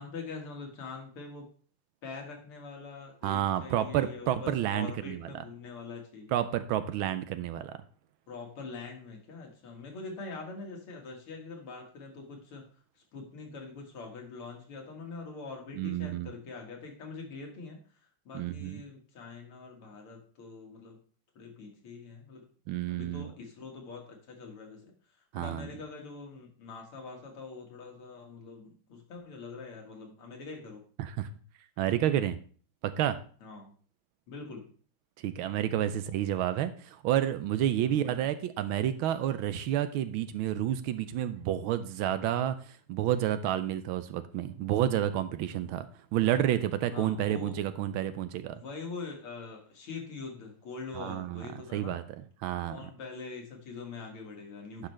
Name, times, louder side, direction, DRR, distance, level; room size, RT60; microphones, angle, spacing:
voice 1, 0.0-1.5 2.0-6.4 8.3-12.6 13.1-17.8 18.3-21.0 21.4-22.4 22.9-24.9 25.3-30.9 33.4-33.7 34.3-34.7 37.8-38.3 46.9-47.6 48.5-52.0 52.7-54.9, left 4 dB, 80° left, 1 dB, 2.6 m, -44 dB
voice 2, 3.2-5.3 6.3-7.7 15.8-16.3 18.3-18.8 22.7-23.2 25.3-25.7 31.0-31.3 31.8-32.4 32.8-33.2 35.2-42.6 42.9-45.8 46.1-48.5 50.9-51.5 51.7-52.0 52.4-52.8 54.8-54.9, right 11 dB, 80° right, 12 dB, 1.4 m, -30 dB
10.0 x 6.1 x 3.2 m, 0.43 s
omnidirectional pair, 2.4 m